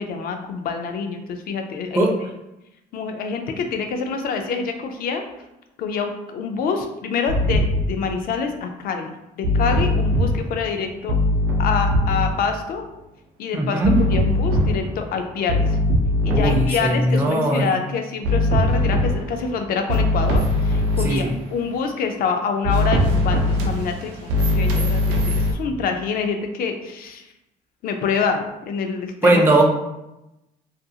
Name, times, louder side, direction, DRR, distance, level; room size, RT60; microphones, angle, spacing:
voice 1, 0.0-2.1 2.9-5.2 5.8-11.1 11.6-12.9 13.4-13.8 14.1-15.7 16.2-27.3 27.8-29.4, left 5 dB, 60° left, 5 dB, 0.4 m, -26 dB
sound 1, 7.3-7.9 9.4-10.4 11.1-12.4 13.8-15.1 15.5-16.9 18.2-19.4 19.9-21.2 22.6-25.5, left 1 dB, 85° right, 0.5 m, -20 dB
voice 2, 13.5-14.0 16.3-17.8 21.0-21.3 29.2-29.6, right 2 dB, 15° right, 0 dB, 0.4 m, -19 dB
2.5 x 2.3 x 2.7 m, 0.93 s
cardioid pair, 110°, 17 cm